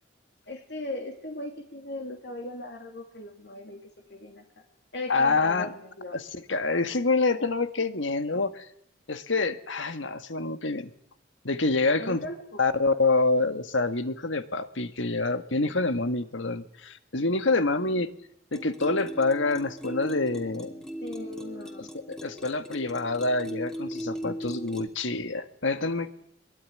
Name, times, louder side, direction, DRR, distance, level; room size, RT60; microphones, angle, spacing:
voice 1, 0.5-4.4 4.9-6.2 12.0-12.8 21.0-21.9, left 2 dB, 60° left, 3 dB, 2.9 m, -38 dB
voice 2, 5.1-5.7 6.1-8.7 9.1-10.9 11.4-12.3 12.6-18.1 18.5-20.7 22.1-26.1, left 3 dB, 85° left, 9 dB, 1.8 m, -27 dB
sound 1, 18.5-24.9, equal, 5° left, 2.6 m, -38 dB
23.0 x 22.5 x 9.9 m, 0.72 s
head